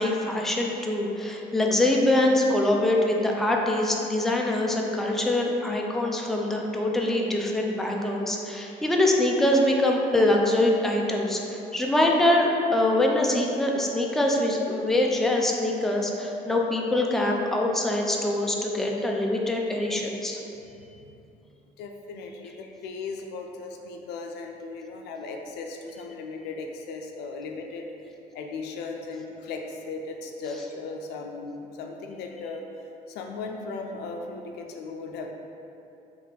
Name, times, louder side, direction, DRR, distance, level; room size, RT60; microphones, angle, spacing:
voice 1, 0.0-20.4, left 1 dB, ahead, 0 dB, 0.3 m, -24 dB
voice 2, 21.8-27.9 28.3-32.6 33.1-35.3, left 3 dB, 80° left, 3 dB, 0.4 m, -37 dB
3.6 x 2.4 x 4.2 m, 2.8 s
cardioid pair, 110°, 17 cm